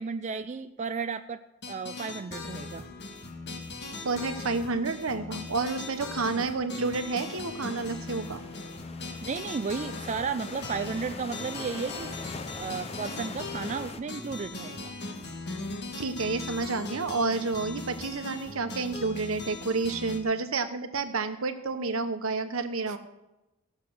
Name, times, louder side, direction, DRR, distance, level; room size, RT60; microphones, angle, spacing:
voice 1, 0.0-1.4 1.7-2.9 6.4-6.5 9.2-14.9 22.9-23.0, right 5 dB, 35° right, 9 dB, 0.4 m, -34 dB
sound 1, 1.6-20.2, left 3 dB, 55° left, 1.5 m, -39 dB
voice 2, 4.0-8.4 16.0-23.0, right 3 dB, 75° right, 8 dB, 1.0 m, -30 dB
sound 2, 6.8-14.0, left 4 dB, 30° left, 0.6 m, -43 dB
15.5 x 6.7 x 6.1 m, 0.99 s
head